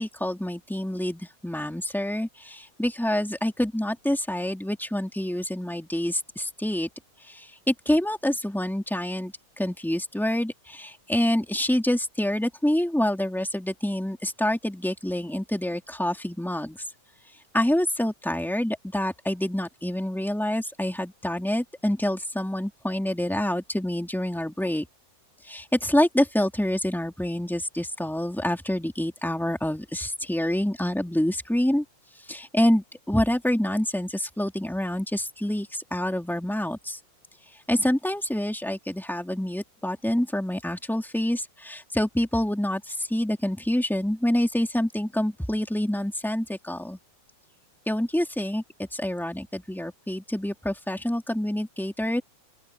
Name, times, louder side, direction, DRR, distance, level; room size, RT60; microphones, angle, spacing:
voice 1, 0.0-6.9 7.2-16.8 17.5-24.9 25.4-31.8 32.3-37.0 37.7-47.0 47.9-52.2, left 1 dB, ahead, 2.1 m, -27 dB
open air
omnidirectional pair, 3.5 m